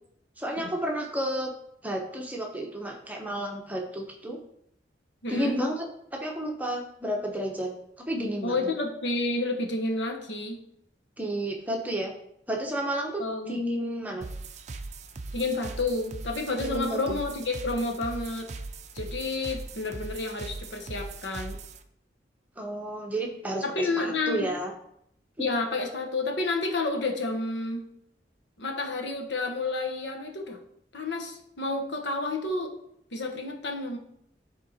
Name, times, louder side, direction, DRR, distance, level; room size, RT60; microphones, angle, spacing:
voice 1, 0.4-1.5 1.8-4.4 5.3-5.8 6.1-7.7 8.1-8.7 11.2-12.1 12.5-13.2 13.5-14.3 16.6-17.2 22.6-24.7, right 1 dB, 10° right, 1 dB, 0.9 m, -31 dB
voice 2, 5.2-5.6 8.4-10.6 13.2-13.6 15.3-18.5 18.9-21.6 23.6-24.5 25.4-27.9 28.6-30.6 30.9-32.7 33.1-34.0, left 2 dB, 85° left, 2 dB, 1.2 m, -30 dB
sound 1, 14.2-21.8, right 3 dB, 40° right, 0.5 m, -39 dB
9.4 x 3.7 x 4.2 m, 0.73 s
head